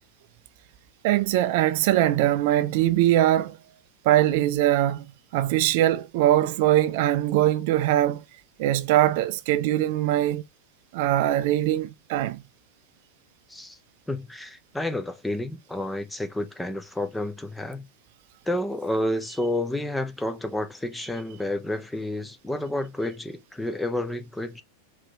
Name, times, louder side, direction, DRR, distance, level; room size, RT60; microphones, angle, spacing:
voice 1, 1.0-3.6 4.0-5.0 5.3-8.2 8.6-10.4 10.9-12.4, right 13 dB, 50° right, 0.5 m, -22 dB
voice 2, 14.1-17.9 18.5-24.6, left 1 dB, 5° left, 0.6 m, -30 dB
4.8 x 2.9 x 3.3 m
figure-of-eight pair, 90°, 0 cm